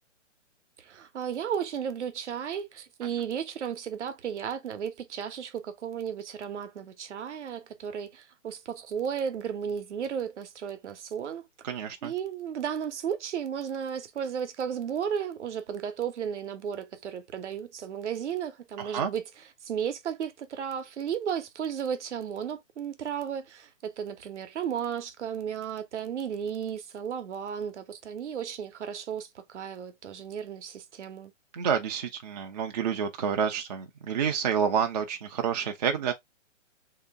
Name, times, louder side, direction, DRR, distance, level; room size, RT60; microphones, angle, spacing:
voice 1, 0.8-11.5 11.8-19.2 19.6-31.3, right 8 dB, 65° right, 0.9 m, -34 dB
voice 2, 11.6-12.1 18.8-19.1 31.5-36.1, right 7 dB, 35° right, 0.4 m, -29 dB
3.2 x 2.8 x 3.4 m
hypercardioid pair, 140°, 38 cm